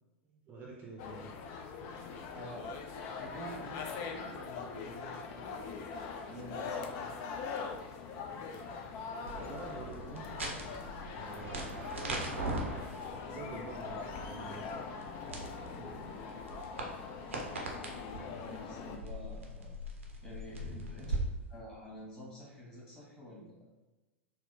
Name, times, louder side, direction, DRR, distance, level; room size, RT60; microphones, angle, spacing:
voice 1, 0.2-1.3 9.3-10.9 11.1-11.7 13.2-14.6, right 3 dB, 30° right, -2 dB, 0.6 m, -47 dB
sound 1, 1.0-19.0, left 5 dB, 45° left, 0.4 m, -42 dB
voice 2, 2.3-5.8 6.2-7.1 15.7-16.2 16.8-17.0 17.9-19.8 20.2-23.7, equal, 15° left, -5 dB, 1.5 m, -49 dB
sound 2, 9.3-21.2, right 2 dB, 85° right, 0.6 m, -41 dB
4.1 x 2.0 x 2.6 m, 1.1 s
figure-of-eight pair, 90°, 7 cm